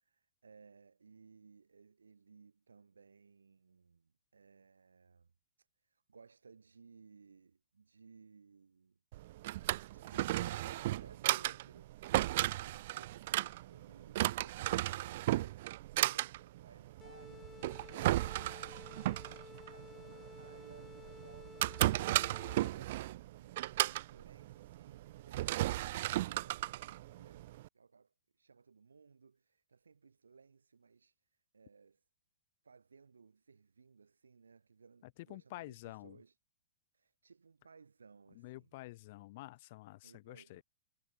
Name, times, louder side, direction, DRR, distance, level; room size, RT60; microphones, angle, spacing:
voice 1, 0.0-5.3 5.6-9.0 9.5-11.9 12.5-18.9 19.7-25.6 25.9-32.0 32.6-36.4 36.9-38.8 40.0-40.6, right 5 dB, 85° right, 7.7 m, -61 dB
Drawer open or close, 9.1-27.7, right 16 dB, 55° right, 0.7 m, -35 dB
sound 1, 17.0-23.0, left 7 dB, 20° left, 4.2 m, -54 dB
voice 2, 35.3-36.2 38.4-40.6, left 19 dB, 50° left, 5.3 m, -49 dB
hypercardioid pair, 115°, 0 cm